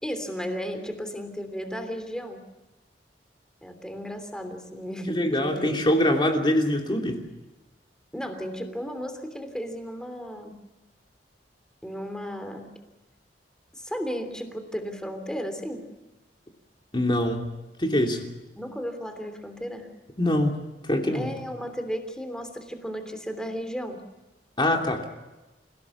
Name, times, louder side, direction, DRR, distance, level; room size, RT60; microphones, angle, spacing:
voice 1, 0.0-2.4 3.6-5.7 8.1-10.5 11.8-12.7 13.7-15.8 18.6-19.9 21.1-24.0, equal, 5° left, 7 dB, 3.1 m, -34 dB
voice 2, 5.1-7.2 16.9-17.5 17.8-18.3 20.2-20.5 20.8-21.3 24.6-25.2, left 1 dB, 30° left, 2 dB, 2.9 m, -24 dB
28.5 x 17.5 x 7.2 m, 1.1 s
head